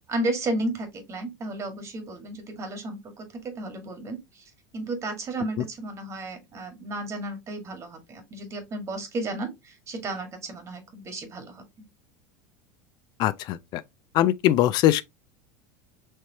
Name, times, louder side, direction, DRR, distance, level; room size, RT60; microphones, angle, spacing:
voice 1, 0.1-11.6, right 2 dB, 35° right, 1.7 m, -33 dB
voice 2, 13.2-13.8 14.1-15.0, left 13 dB, 50° left, 0.3 m, -21 dB
4.4 x 3.2 x 2.8 m
supercardioid pair, 110°, 9 cm